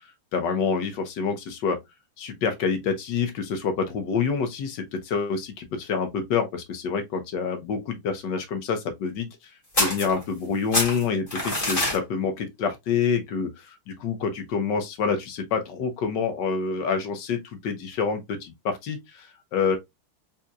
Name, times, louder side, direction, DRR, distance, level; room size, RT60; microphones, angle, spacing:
voice 1, 0.3-1.8 2.2-9.3 9.8-19.3 19.5-19.8, left 5 dB, 65° left, 1.3 m, -27 dB
sound 1, 9.7-10.5 10.7-12.0, left 1 dB, 15° left, 1.8 m, -25 dB
4.2 x 3.7 x 2.3 m
omnidirectional pair, 2.2 m